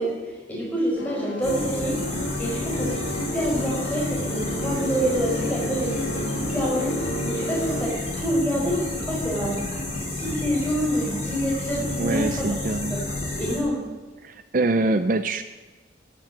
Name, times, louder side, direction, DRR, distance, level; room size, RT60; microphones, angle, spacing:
voice 1, 0.0-2.0 2.4-9.6 9.9-12.5 13.3-13.8, equal, 10° left, -4 dB, 5.5 m, -27 dB
sound 1, 1.0-7.8, equal, 70° left, 2.1 m, -32 dB
sound 2, 1.4-13.6, left 2 dB, 35° left, 4.2 m, -30 dB
voice 2, 12.0-13.0 14.2-15.4, right 2 dB, 45° right, 10 dB, 0.5 m, -24 dB
12.5 x 10.5 x 7.7 m, 1.2 s
head